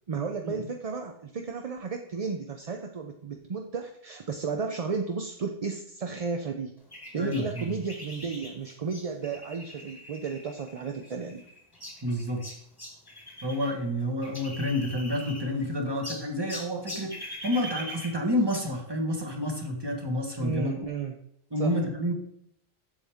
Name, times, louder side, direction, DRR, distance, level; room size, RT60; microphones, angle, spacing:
voice 1, 0.1-6.7 7.1-11.4 20.4-21.2 21.6-21.7, right 5 dB, 40° right, 4 dB, 0.6 m, -33 dB
sound 1, 6.9-13.7 14.0-15.7 16.0-18.8, equal, 20° left, 1.5 m, -43 dB
voice 2, 7.2-7.7 12.0-12.4 13.4-20.8 21.5-22.1, left 1 dB, 25° right, 2 dB, 1.5 m, -29 dB
8.0 x 7.3 x 3.5 m, 0.73 s
omnidirectional pair, 1.1 m